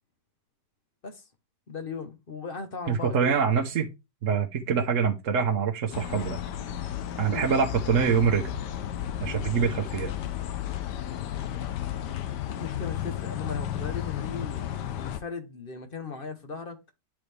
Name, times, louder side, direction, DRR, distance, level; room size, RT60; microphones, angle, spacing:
voice 1, 1.7-3.7 7.3-7.5 12.6-16.8, left 5 dB, 40° left, 1.0 m, -38 dB
voice 2, 2.9-3.9 4.2-6.4 7.2-8.5 9.2-10.1, right 6 dB, 55° right, 1.2 m, -25 dB
sound 1, 5.9-15.2, left 10 dB, 80° left, 1.3 m, -33 dB
10.0 x 4.1 x 3.3 m
omnidirectional pair, 1.8 m